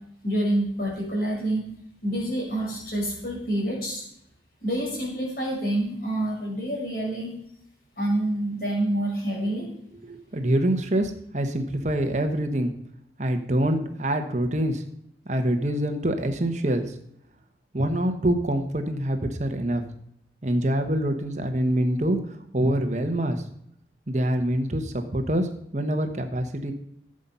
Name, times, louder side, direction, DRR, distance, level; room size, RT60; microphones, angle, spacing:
voice 1, 0.2-1.6 2.0-4.0 4.6-7.3 8.0-9.7, right 1 dB, 50° left, -3 dB, 5.5 m, -27 dB
voice 2, 10.0-12.7 13.2-14.8 15.3-16.9 17.7-19.8 20.4-23.4 24.1-26.7, right 1 dB, 40° right, 6 dB, 1.1 m, -25 dB
14.5 x 7.6 x 5.6 m, 0.71 s
head